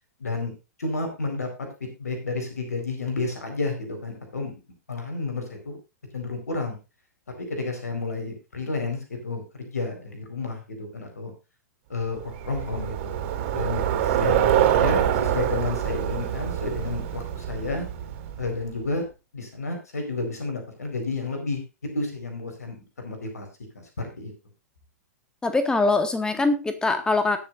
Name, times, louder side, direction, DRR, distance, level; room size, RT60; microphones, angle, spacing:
voice 1, 0.2-0.5 0.8-1.5 2.0-4.5 4.9-5.8 6.1-6.8 7.5-11.3 11.9-13.1 13.5-17.9 18.4-19.0 19.3-23.5 23.7-24.3, left 3 dB, 75° left, 4 dB, 4.5 m, -31 dB
Bicycle, 12.2-18.7, right 10 dB, 45° right, 3.1 m, -25 dB
voice 2, 25.4-27.4, left 3 dB, 10° left, 9 dB, 1.8 m, -23 dB
20.5 x 7.1 x 2.6 m, 0.28 s
figure-of-eight pair, 105°, 9 cm